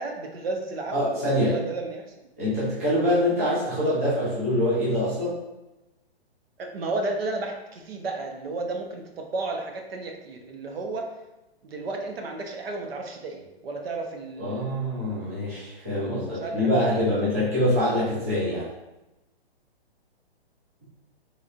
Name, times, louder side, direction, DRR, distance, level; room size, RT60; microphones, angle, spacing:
voice 1, 0.0-1.0 1.3-2.0 6.6-11.1 11.6-15.4 16.1-17.1, right 3 dB, 70° right, 2 dB, 0.8 m, -33 dB
voice 2, 0.9-1.6 2.4-5.4 14.4-18.7, left 1 dB, 15° right, -9 dB, 0.5 m, -24 dB
4.1 x 3.2 x 2.4 m, 0.99 s
hypercardioid pair, 175°, 31 cm